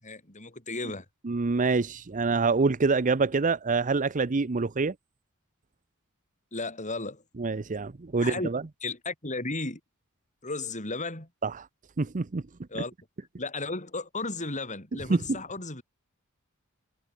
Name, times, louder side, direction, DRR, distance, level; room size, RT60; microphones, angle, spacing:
voice 1, 0.0-1.1 6.5-7.2 8.2-8.5 8.8-9.8 10.4-11.3 12.7-12.9 13.4-15.8, left 3 dB, 35° left, 7.8 m, -34 dB
voice 2, 1.2-4.9 7.4-8.6 11.4-11.7 12.0-12.4 15.1-15.2, right 4 dB, 35° right, 0.6 m, -26 dB
head